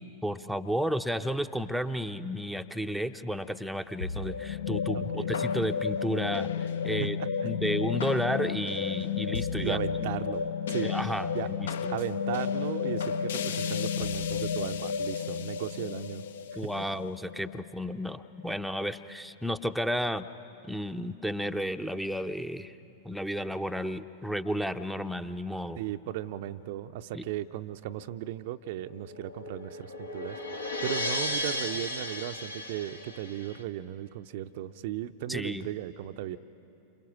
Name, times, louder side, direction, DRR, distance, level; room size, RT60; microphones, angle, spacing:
voice 1, 0.2-7.2 7.4-10.1 10.8-12.0 16.5-20.3 20.7-22.7 23.0-25.8 27.1-27.2 35.3-35.7, equal, ahead, 7 dB, 0.6 m, -32 dB
sound 1, 4.0-18.4, left 7 dB, 60° left, 0.7 m, -32 dB
voice 2, 4.9-5.3 6.9-7.7 9.6-11.0 11.3-11.5 11.9-16.2 16.5-16.9 25.8-36.4, right 13 dB, 50° right, 10 dB, 0.5 m, -36 dB
sound 2, 28.8-33.6, left 1 dB, 80° left, 1.7 m, -35 dB
29.0 x 27.0 x 6.2 m, 2.9 s
figure-of-eight pair, 90°, 0 cm